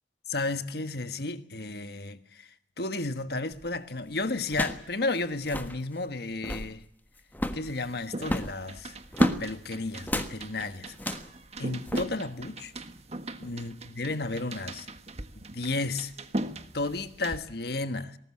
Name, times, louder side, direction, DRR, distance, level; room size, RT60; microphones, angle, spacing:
voice 1, 0.3-2.5 2.8-6.8 7.5-9.0 9.4-11.1 11.6-12.7 13.4-14.9 15.3-16.1 16.7-18.2, left 2 dB, 65° left, 1.4 m, -33 dB
sound 1, 3.5-3.8 4.5-4.9 5.2-5.3 5.4-5.8 6.3-6.7 7.3-7.7 8.2-9.4 10.0-10.3 10.9-11.3 11.9-12.0, left 1 dB, 10° left, 1.4 m, -31 dB
sound 2, 7.7-17.4, right 1 dB, 35° right, 1.5 m, -37 dB
21.0 x 18.5 x 7.7 m
head